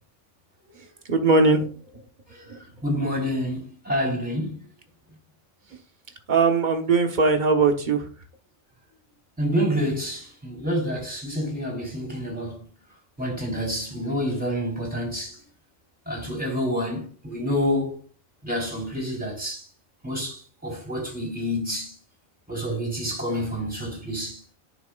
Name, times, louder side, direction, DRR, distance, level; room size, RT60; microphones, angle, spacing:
voice 1, 1.1-1.7 2.5-2.6 6.3-8.0, right 4 dB, 35° right, 1.2 m, -20 dB
voice 2, 2.8-4.6 9.4-12.6 13.2-15.4 16.1-18.0 18.4-19.6 20.0-21.9 22.5-24.4, equal, 5° right, 3.7 m, -28 dB
10.5 x 6.0 x 2.4 m
omnidirectional pair, 1.4 m